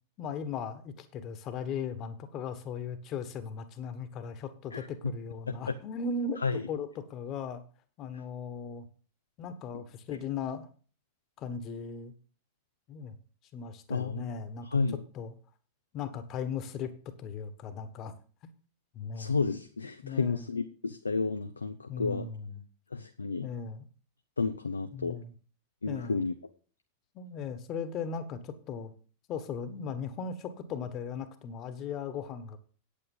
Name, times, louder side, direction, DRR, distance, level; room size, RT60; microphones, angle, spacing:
voice 1, 0.2-7.6 8.0-8.9 9.4-10.7 11.4-12.1 12.9-13.2 13.5-15.3 15.9-16.9 17.2-18.1 18.9-19.4 20.0-20.5 21.9-22.6 23.4-23.8 24.9-25.3 25.9-26.3 27.1-28.9 29.3-32.6, left 6 dB, 35° left, 11 dB, 1.4 m, -37 dB
voice 2, 13.9-14.3 14.7-15.0 19.2-22.3 22.9-23.5 24.4-25.2 25.8-26.3, left 4 dB, 75° left, 9 dB, 0.6 m, -31 dB
9.1 x 8.6 x 5.5 m, 0.40 s
figure-of-eight pair, 90°, 0 cm